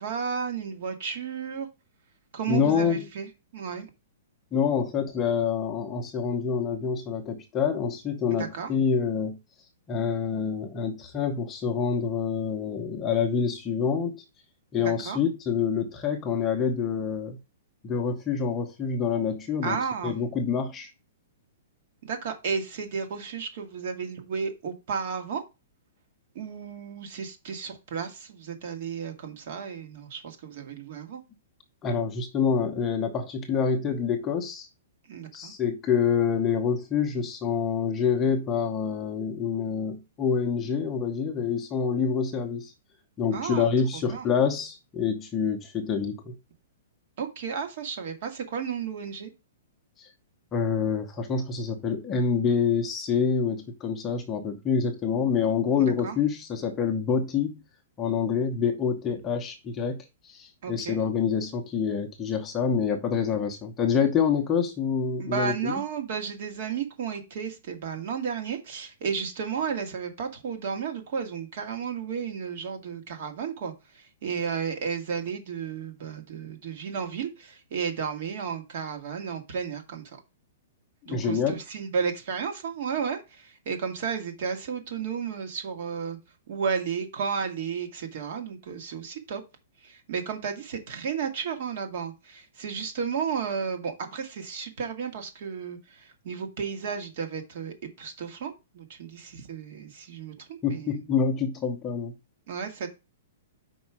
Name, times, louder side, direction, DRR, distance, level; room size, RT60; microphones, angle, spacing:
voice 1, 0.0-1.7 2.3-3.9 8.3-8.7 14.8-15.2 19.6-20.2 22.0-25.4 26.3-31.2 35.1-35.5 43.3-44.3 47.2-49.3 55.8-56.2 60.6-61.0 65.2-80.0 81.1-86.2 86.5-89.4 89.8-101.0 102.5-102.9, right 6 dB, 45° right, 1.7 m, -33 dB
voice 2, 2.5-3.1 4.5-9.4 9.9-14.2 14.7-17.4 17.8-20.9 31.8-34.7 35.3-42.7 43.2-46.3 50.0-50.1 50.5-57.6 58.0-60.0 60.3-65.7 81.1-81.6 100.6-102.1, left 6 dB, 15° left, 0.8 m, -27 dB
5.3 x 4.6 x 6.0 m
hypercardioid pair, 170°, 0 cm